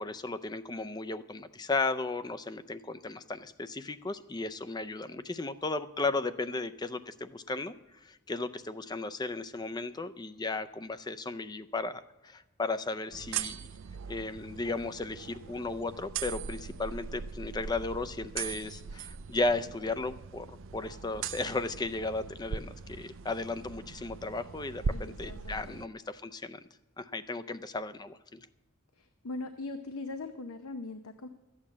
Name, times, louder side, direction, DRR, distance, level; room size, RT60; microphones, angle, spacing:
voice 1, 0.0-7.7 8.0-13.7 14.1-26.6 27.0-28.4, left 3 dB, 20° left, 13 dB, 0.4 m, -35 dB
sound 1, 13.1-25.9, right 6 dB, 60° right, 0.4 m, -40 dB
voice 2, 24.9-25.8 29.0-31.3, left 3 dB, 85° left, 8 dB, 0.7 m, -41 dB
sound 2, 26.0-26.1, equal, 45° left, 1.8 m, -57 dB
13.5 x 8.7 x 7.3 m, 1.1 s
head